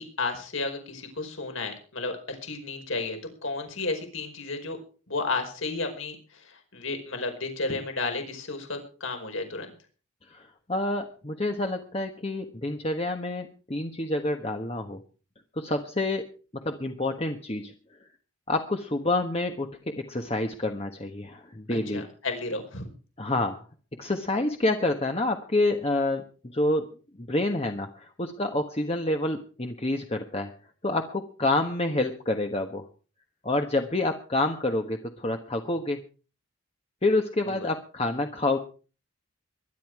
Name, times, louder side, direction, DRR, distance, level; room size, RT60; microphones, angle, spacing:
voice 1, 0.0-4.8 5.1-9.7 21.7-22.8 37.5-37.7, left 3 dB, 65° left, 5 dB, 5.0 m, -33 dB
voice 2, 10.3-15.0 15.6-16.3 16.5-17.7 18.5-22.1 23.2-23.6 24.0-26.2 26.5-26.9 27.2-30.5 30.8-32.8 33.4-36.0 37.0-38.6, left 2 dB, 30° left, 4 dB, 1.3 m, -28 dB
21.5 x 11.5 x 4.8 m, 0.38 s
head